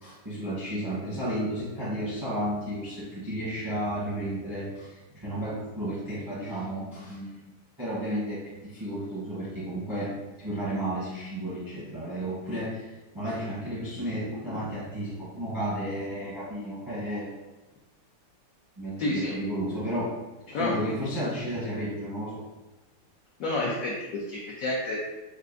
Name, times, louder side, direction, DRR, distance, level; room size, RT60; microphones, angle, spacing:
voice 1, 0.0-7.5 7.8-17.3 18.8-20.1 20.5-22.4, equal, 25° right, -8 dB, 0.4 m, -33 dB
voice 2, 19.0-19.3 20.5-20.7 23.4-25.0, left 2 dB, 85° left, -3 dB, 0.7 m, -29 dB
4.4 x 2.4 x 2.5 m, 1.1 s
omnidirectional pair, 2.0 m